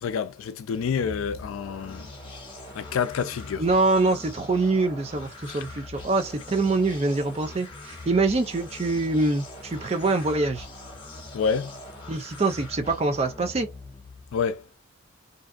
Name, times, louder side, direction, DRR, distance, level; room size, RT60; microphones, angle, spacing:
voice 1, 0.0-2.1 2.7-3.7 5.5-5.6 11.3-11.8 14.3-14.6, left 6 dB, 90° left, 0.4 m, -28 dB
sound 1, 0.7-14.5, left 2 dB, 25° left, 0.8 m, -42 dB
voice 2, 3.6-10.7 12.1-13.7, right 3 dB, 30° right, 0.4 m, -24 dB
2.6 x 2.3 x 2.4 m
head